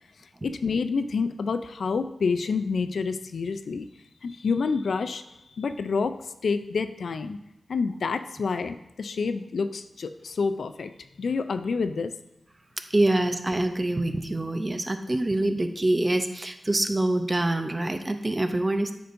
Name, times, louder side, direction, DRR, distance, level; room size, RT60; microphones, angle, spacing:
voice 1, 0.4-3.9 4.2-7.4 7.7-10.9 11.2-12.1, left 4 dB, 80° left, 9 dB, 0.3 m, -28 dB
voice 2, 12.9-18.9, right 1 dB, 25° right, 8 dB, 0.5 m, -25 dB
8.7 x 5.2 x 2.6 m, 0.88 s
wide cardioid pair, 75°, 0 cm